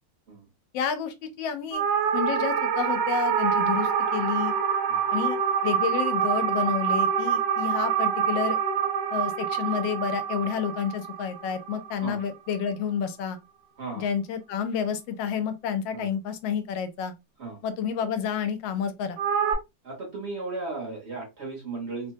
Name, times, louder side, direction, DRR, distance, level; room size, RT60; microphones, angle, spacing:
voice 1, 0.7-1.8 2.1-4.5 5.1-5.4 5.6-8.6 9.1-13.4 14.0-17.1 17.6-19.2, left 7 dB, 85° left, 1.3 m, -30 dB
sound 1, 1.7-12.2 19.2-19.5, right 7 dB, 80° right, 1.3 m, -26 dB
voice 2, 13.8-14.1 15.9-16.1 17.4-17.6 19.8-22.1, right 3 dB, 45° right, 1.1 m, -35 dB
3.1 x 2.1 x 2.7 m
omnidirectional pair, 2.0 m